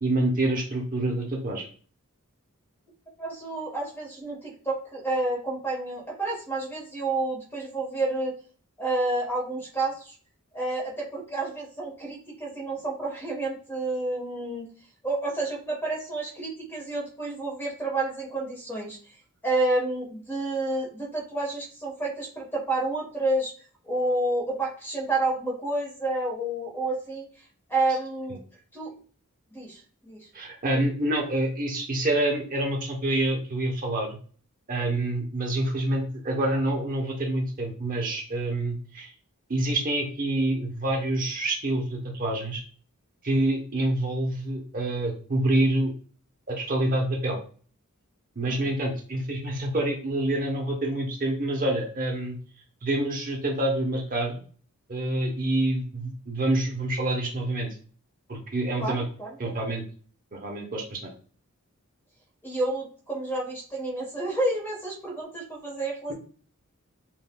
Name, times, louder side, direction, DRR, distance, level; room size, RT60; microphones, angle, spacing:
voice 1, 0.0-1.7 30.3-34.2 34.7-39.1 39.5-42.6 43.2-45.9 46.5-47.4 48.4-52.4 52.8-54.4 54.9-57.7 58.3-59.0 59.4-59.8 60.3-61.1, right 1 dB, 40° right, 0 dB, 0.9 m, -27 dB
voice 2, 3.2-8.3 8.8-10.1 10.5-14.6 15.0-19.0 19.4-23.5 23.8-27.3 27.7-28.4 28.7-28.9 29.5-30.3 48.5-48.7 58.8-59.3 62.4-66.1, right 2 dB, 10° left, -1 dB, 1.2 m, -29 dB
7.5 x 2.5 x 2.2 m, 0.43 s
head